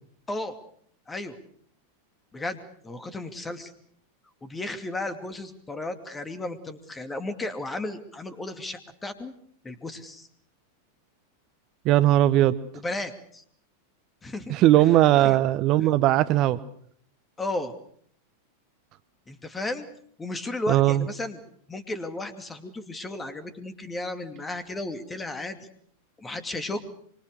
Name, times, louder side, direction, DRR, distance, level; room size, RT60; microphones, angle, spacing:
voice 1, 1.1-1.4 2.3-3.7 4.4-9.3 9.6-10.3 12.7-13.4 14.2-14.6 15.2-15.4 17.4-17.7 19.3-19.9 20.2-21.4 21.7-25.6 26.2-26.8, left 2 dB, 15° left, 10 dB, 2.6 m, -34 dB
voice 2, 11.8-12.6 14.5-16.6 20.7-21.0, right 14 dB, 40° right, 13 dB, 1.0 m, -19 dB
25.5 x 25.0 x 6.7 m, 0.65 s
figure-of-eight pair, 90°, 0 cm